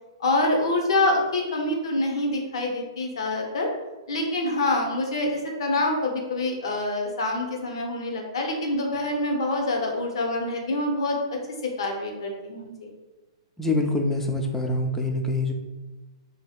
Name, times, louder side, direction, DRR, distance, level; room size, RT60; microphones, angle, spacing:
voice 1, 0.2-3.7 4.1-12.9, left 2 dB, 65° left, 1 dB, 0.6 m, -26 dB
voice 2, 13.6-15.5, left 2 dB, 10° left, 2 dB, 0.3 m, -25 dB
2.7 x 2.6 x 2.3 m, 1.1 s
hypercardioid pair, 115°, 3 cm